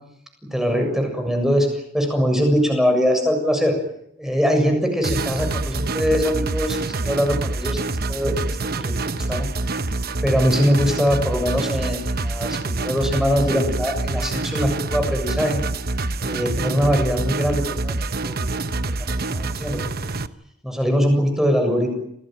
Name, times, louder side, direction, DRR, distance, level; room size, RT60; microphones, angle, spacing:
voice 1, 0.5-3.8 4.2-7.8 8.1-9.5 10.2-15.6 16.2-18.0 18.2-20.1 20.6-21.9, equal, ahead, 4 dB, 7.1 m, -22 dB
sound 1, 5.0-20.3, right 2 dB, 45° right, 1.1 m, -26 dB
28.0 x 20.0 x 9.2 m, 0.75 s
head